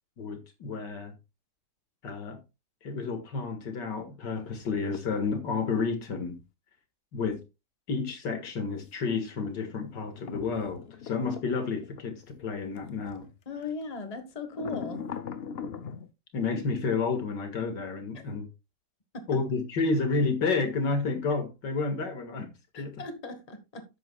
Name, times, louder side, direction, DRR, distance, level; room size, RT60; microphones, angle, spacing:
voice 1, 0.2-1.2 2.0-2.4 2.8-6.4 7.1-7.4 7.9-13.3 16.3-18.5 19.3-23.0, left 4 dB, 80° left, 2.4 m, -30 dB
sound 1, 4.6-6.0 8.1-13.2 13.6-13.8 14.5-16.1, left 7 dB, 55° left, 0.7 m, -42 dB
voice 2, 13.5-15.1 19.1-19.3 22.7-23.8, left 3 dB, 25° left, 1.4 m, -38 dB
12.0 x 8.6 x 2.3 m
omnidirectional pair, 1.9 m